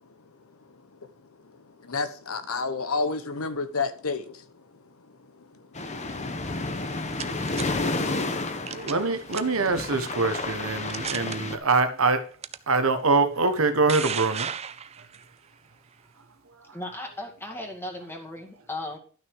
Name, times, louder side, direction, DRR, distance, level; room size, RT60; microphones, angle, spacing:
voice 1, 1.8-4.4 5.5-5.6, left 4 dB, 85° left, 1.0 m, -29 dB
sound 1, 5.7-11.6, left 2 dB, 35° left, 1.1 m, -31 dB
sound 2, 6.7-7.6 8.7-9.0 9.3-9.7 10.3-10.4 10.9-11.4 12.4-12.6 13.5-15.2, right 7 dB, 30° right, 0.5 m, -34 dB
voice 2, 8.7-12.3 12.7-14.5 16.5-16.8, right 3 dB, 70° right, 1.3 m, -24 dB
voice 3, 16.7-19.0, left 1 dB, 10° left, 2.2 m, -36 dB
12.0 x 6.2 x 4.8 m
head